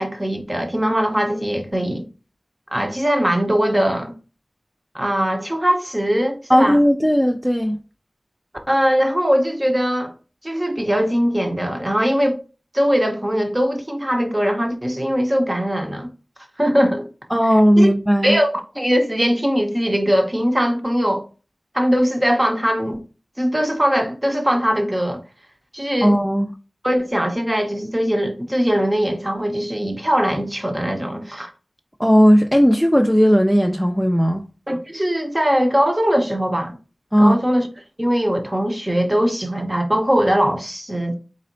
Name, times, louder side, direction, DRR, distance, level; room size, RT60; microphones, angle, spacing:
voice 1, 0.0-2.0 2.7-4.1 4.9-6.8 8.7-10.1 10.4-12.4 12.7-16.1 16.6-17.1 17.8-17.9 18.2-21.2 21.7-23.0 23.4-25.2 25.7-26.1 26.8-31.5 34.7-36.7 37.2-37.7 38.0-41.1, equal, 25° right, 1.1 m, -20 dB
voice 2, 6.5-7.8 17.3-18.4 26.0-26.5 32.0-34.4 37.1-37.4, equal, ahead, 0.5 m, -15 dB
4.2 x 4.0 x 2.7 m
wide cardioid pair, 45°, 0 cm